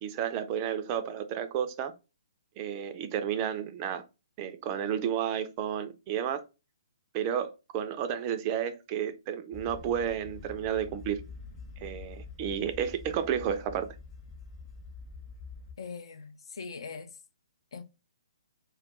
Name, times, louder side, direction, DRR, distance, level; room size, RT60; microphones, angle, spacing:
voice 1, 0.0-1.9 2.6-4.0 4.4-6.4 7.1-11.2 11.8-13.9, right 9 dB, 30° right, 0.4 m, -32 dB
sound 1, 9.5-15.7, left 4 dB, 20° left, 0.7 m, -46 dB
voice 2, 15.8-17.1 17.7-17.8, left 5 dB, 65° left, 0.4 m, -41 dB
2.3 x 2.2 x 3.7 m
figure-of-eight pair, 130°, 3 cm